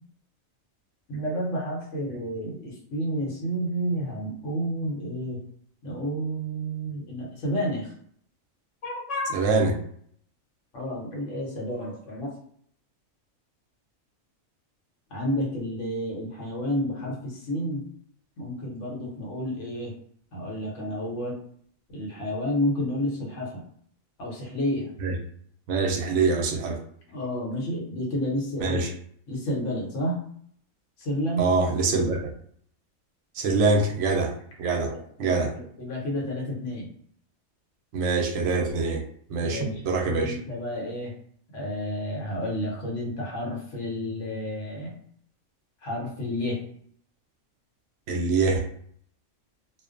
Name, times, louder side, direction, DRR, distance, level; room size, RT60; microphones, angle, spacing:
voice 1, 1.1-5.4 5.8-7.9 8.8-9.4 10.7-12.3 15.1-17.8 18.4-19.9 20.3-21.4 21.9-23.6 24.2-24.9 27.1-28.8 29.3-30.2 31.0-31.5 34.7-36.9 39.5-41.1 41.5-44.9 45.8-46.6, equal, 65° left, -2 dB, 1.1 m, -30 dB
voice 2, 9.3-9.7 25.0-25.1 25.7-26.8 28.6-28.9 31.4-32.3 33.3-34.3 34.6-34.9 35.2-35.5 37.9-39.0 39.3-40.4 48.1-48.7, right 4 dB, 70° right, 1 dB, 0.8 m, -24 dB
2.4 x 2.1 x 2.4 m, 0.63 s
omnidirectional pair, 1.4 m